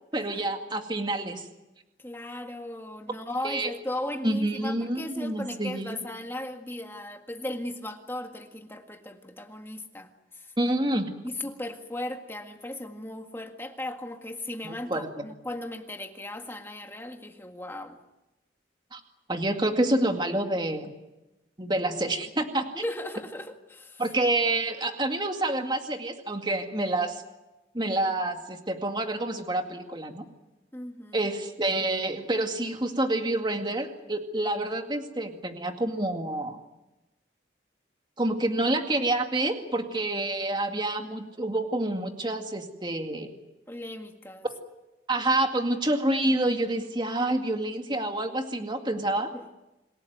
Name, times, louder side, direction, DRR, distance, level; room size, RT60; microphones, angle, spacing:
voice 1, 0.1-1.5 3.4-3.7 4.2-6.0 10.6-11.1 14.6-15.1 18.9-19.0 19.3-20.9 21.6-22.8 24.0-27.2 27.7-30.3 31.1-36.6 38.2-43.3 44.4-44.5 45.1-49.3, right 1 dB, 25° right, 5 dB, 2.1 m, -28 dB
voice 2, 2.0-10.1 10.3-10.5 11.2-18.0 22.8-24.0 30.7-31.2 43.7-44.5 49.3-49.4, left 1 dB, 10° left, 5 dB, 1.8 m, -37 dB
27.0 x 17.0 x 9.3 m, 1.0 s
head